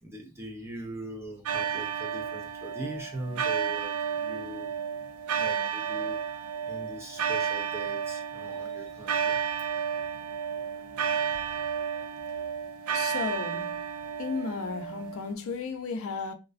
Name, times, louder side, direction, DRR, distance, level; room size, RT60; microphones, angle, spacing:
voice 1, 0.0-4.7 5.4-6.2 6.7-9.5, right 1 dB, 10° right, 0.4 m, -41 dB
sound 1, 1.5-15.3, right 7 dB, 75° right, 0.3 m, -32 dB
voice 2, 12.9-13.8 14.2-16.3, left 4 dB, 70° left, 0.4 m, -34 dB
2.3 x 2.2 x 2.4 m
head